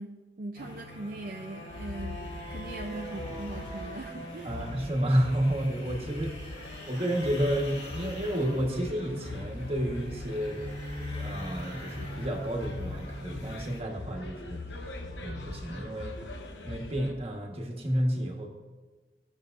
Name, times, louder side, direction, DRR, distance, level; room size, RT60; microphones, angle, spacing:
voice 1, 0.0-4.5, right 2 dB, 55° right, 1 dB, 0.6 m, -40 dB
sound 1, 0.6-13.8, equal, 35° left, 1.8 m, -43 dB
sound 2, 1.7-17.1, left 2 dB, 85° left, 1.0 m, -42 dB
voice 2, 4.4-6.3 6.8-10.6 11.1-14.6 15.2-16.2 16.6-18.5, equal, 35° right, 1 dB, 1.4 m, -30 dB
16.0 x 6.9 x 2.6 m, 1.3 s
head